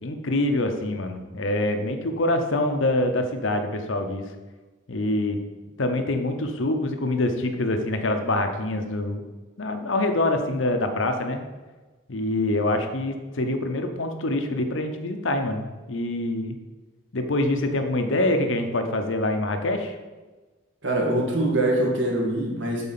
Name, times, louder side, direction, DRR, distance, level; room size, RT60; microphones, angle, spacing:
voice 1, 0.0-4.3 4.9-5.4 5.8-9.2 9.6-11.4 12.1-16.6 17.1-20.0, left 1 dB, 80° left, 6 dB, 0.8 m, -25 dB
voice 2, 20.8-22.9, right 1 dB, 70° right, -1 dB, 2.0 m, -23 dB
7.9 x 4.2 x 5.8 m, 1.3 s
head